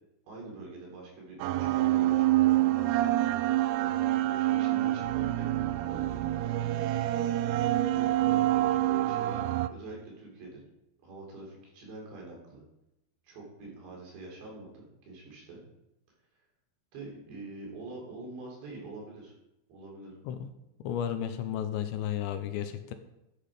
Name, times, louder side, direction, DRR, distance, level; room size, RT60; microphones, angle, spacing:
voice 1, 0.3-3.1 3.8-6.6 7.9-10.6 11.0-12.6 13.2-15.6 16.9-19.4 19.7-20.1, right 3 dB, 70° right, -2 dB, 5.6 m, -45 dB
sound 1, 1.4-9.7, right 15 dB, 85° right, 2.3 m, -27 dB
voice 2, 20.8-22.9, left 10 dB, 80° left, 9 dB, 2.9 m, -33 dB
13.5 x 8.7 x 5.0 m, 0.88 s
omnidirectional pair, 5.4 m